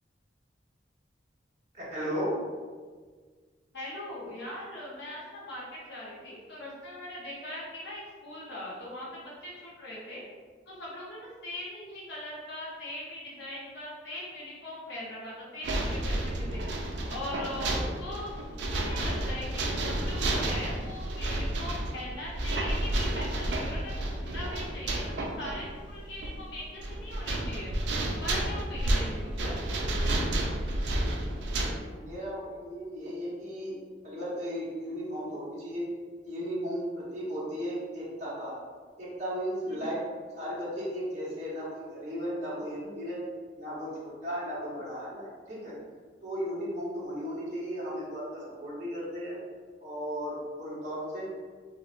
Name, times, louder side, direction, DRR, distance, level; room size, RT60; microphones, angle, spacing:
voice 1, 1.7-2.3 18.9-19.1 31.8-33.7 34.0-35.9 36.2-38.6 39.0-40.0 40.4-43.2 43.6-45.7 46.2-49.4 49.8-51.3, equal, 40° right, -7 dB, 0.9 m, -35 dB
voice 2, 3.7-10.2 10.7-16.6 17.1-18.3 18.6-23.9 24.2-27.7 28.2-29.5 39.7-39.9, left 1 dB, 70° left, -6 dB, 0.8 m, -40 dB
sound 1, 15.6-31.7, right 1 dB, 70° right, 0.4 m, -31 dB
4.1 x 2.0 x 2.5 m, 1.5 s
head